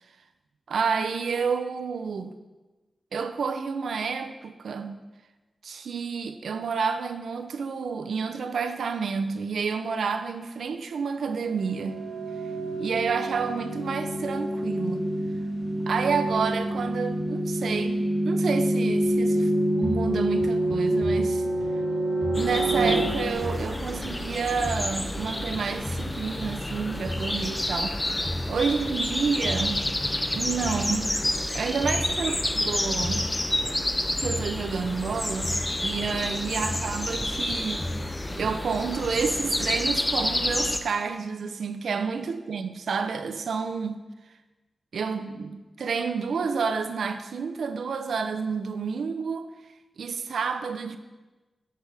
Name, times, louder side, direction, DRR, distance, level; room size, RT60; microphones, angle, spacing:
voice 1, 0.7-2.3 3.1-5.0 5.6-12.0 12.8-15.1 15.9-19.5 19.8-21.4 22.4-29.8 30.3-31.1 31.5-33.3 34.2-37.8 38.3-44.0 44.9-49.5 50.0-51.0, right 5 dB, 85° right, 9 dB, 0.6 m, -29 dB
sound 1, 11.5-24.2, right 1 dB, 20° right, 3.0 m, -27 dB
sound 2, 19.8-21.9 22.2-24.4 24.6-26.7 27.0-29.1 29.4-31.4 31.8-33.9 34.2-36.3 36.6-38.7, left 1 dB, 45° left, 3.3 m, -36 dB
sound 3, 22.3-40.8, left 1 dB, 15° left, 0.5 m, -29 dB
10.5 x 7.7 x 3.5 m, 1.1 s
wide cardioid pair, 120°, 0 cm